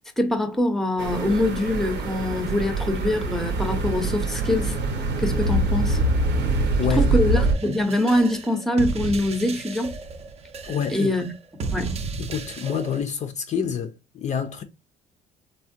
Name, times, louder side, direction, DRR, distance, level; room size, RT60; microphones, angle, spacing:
voice 1, 0.2-4.8 5.2-6.0 6.9-9.9 10.9-11.2 11.7-12.0, left 1 dB, ahead, 0.6 m, -24 dB
sound 1, 1.0-7.5, right 2 dB, 75° right, 0.8 m, -24 dB
voice 2, 6.6-7.2 10.6-11.1 12.2-14.6, left 7 dB, 45° left, 0.4 m, -28 dB
sound 2, 7.4-13.0, right 4 dB, 40° right, 0.5 m, -34 dB
3.4 x 2.1 x 2.5 m
cardioid pair, 110°, 17 cm